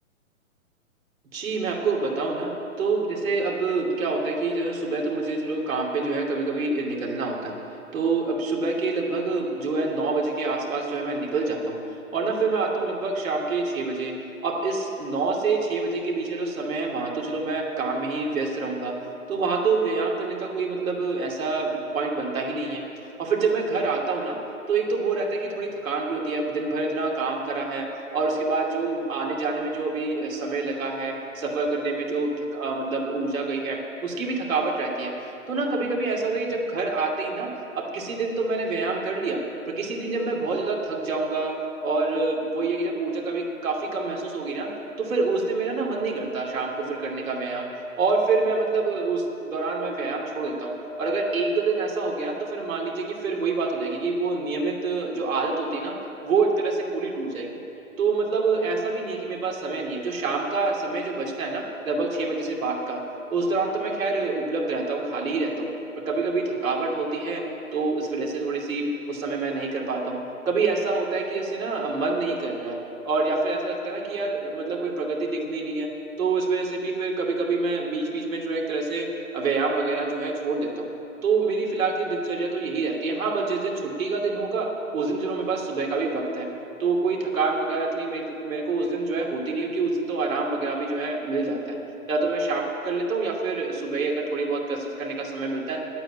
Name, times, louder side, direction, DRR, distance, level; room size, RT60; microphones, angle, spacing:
voice 1, 1.3-2.5 2.8-7.5 7.9-11.8 12.1-14.1 14.4-18.9 19.3-22.8 23.2-24.4 24.7-27.8 28.1-35.1 35.5-37.5 37.7-39.4 39.7-41.5 41.8-44.7 45.0-47.7 48.0-55.9 56.2-57.5 58.0-63.0 63.3-65.7 66.1-67.4 67.7-70.2 70.5-72.8 73.0-75.9 76.2-79.1 79.3-80.8 81.2-84.7 84.9-86.5 86.8-91.8 92.1-95.8, right 3 dB, 70° right, -1 dB, 2.7 m, -26 dB
9.8 x 8.8 x 9.8 m, 2.8 s
hypercardioid pair, 140°, 43 cm